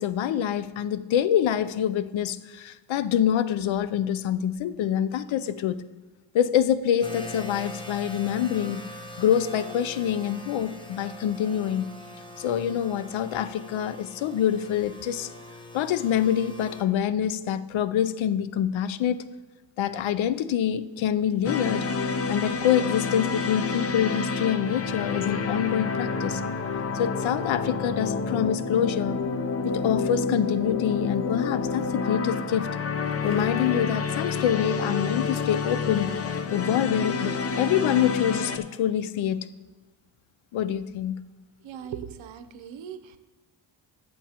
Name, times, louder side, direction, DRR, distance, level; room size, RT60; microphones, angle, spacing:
voice 1, 0.0-5.8 6.3-8.9 9.2-11.9 12.4-15.3 15.7-19.2 19.8-21.9 22.3-26.4 26.9-29.2 29.6-32.7 33.2-36.2 36.5-39.5 40.5-41.2, left 9 dB, 75° left, 0.6 m, -26 dB
sound 1, 7.0-16.8, left 1 dB, 10° left, 1.0 m, -42 dB
sound 2, 21.4-38.6, left 4 dB, 30° left, 0.5 m, -29 dB
Water / Liquid, 29.5-31.9 33.0-34.0 35.5-36.5, equal, 15° right, 3.4 m, -49 dB
voice 2, 41.6-43.2, right 8 dB, 70° right, 0.8 m, -39 dB
13.5 x 7.1 x 2.9 m
cardioid pair, 80°, 48 cm